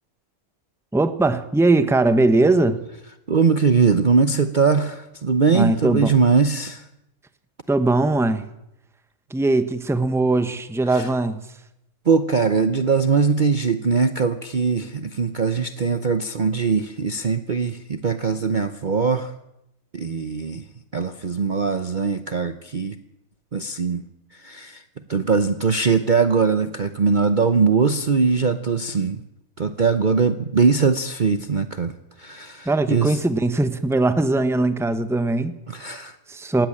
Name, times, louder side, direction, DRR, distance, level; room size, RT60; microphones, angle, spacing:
voice 1, 0.9-2.8 5.5-6.1 7.7-8.4 9.3-11.4 32.7-35.6 36.3-36.7, right 2 dB, ahead, 11 dB, 1.0 m, -20 dB
voice 2, 3.3-6.8 10.9-11.1 12.1-19.3 19.9-20.6 20.9-23.0 23.5-24.0 24.3-24.8 25.1-29.2 29.6-33.2 35.7-36.2, right 5 dB, 40° right, 10 dB, 0.8 m, -21 dB
18.5 x 16.5 x 8.8 m, 0.84 s
omnidirectional pair, 1.6 m